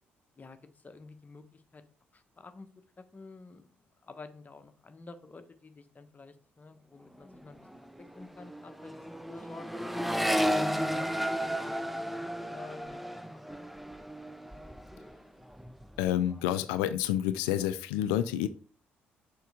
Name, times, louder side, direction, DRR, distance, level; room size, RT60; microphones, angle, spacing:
voice 1, 0.8-1.8 2.1-2.7 3.0-3.7 4.0-7.6 8.1-9.9 10.4-13.7, left 3 dB, 30° left, 9 dB, 1.1 m, -48 dB
Accelerating revving vroom, 7.1-7.4 7.6-15.2 15.5-16.1, equal, ahead, 0.6 m, -33 dB
voice 2, 16.0-18.5, left 11 dB, 70° left, 13 dB, 0.4 m, -29 dB
6.7 x 4.6 x 4.9 m, 0.41 s
figure-of-eight pair, 45°, 6 cm